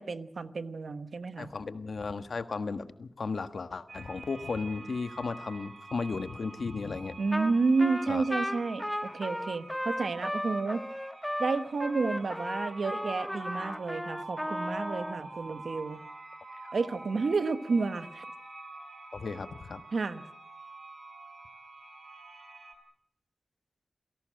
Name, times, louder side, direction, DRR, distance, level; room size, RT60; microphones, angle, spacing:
voice 1, 0.0-1.5 7.2-8.9 9.1-10.8 11.4-16.0 16.7-18.2 19.9-20.2, right 4 dB, 85° right, 11 dB, 1.3 m, -30 dB
voice 2, 1.4-7.2 8.1-8.2 16.6-16.7 19.1-19.8, left 4 dB, 80° left, 10 dB, 1.4 m, -35 dB
sound 1, 3.9-22.7, right 2 dB, 60° right, 4.8 m, -46 dB
Trumpet, 7.3-7.5 7.8-15.2, equal, 5° left, 1.2 m, -35 dB
28.0 x 17.5 x 7.7 m, 0.73 s
wide cardioid pair, 75°, 0 cm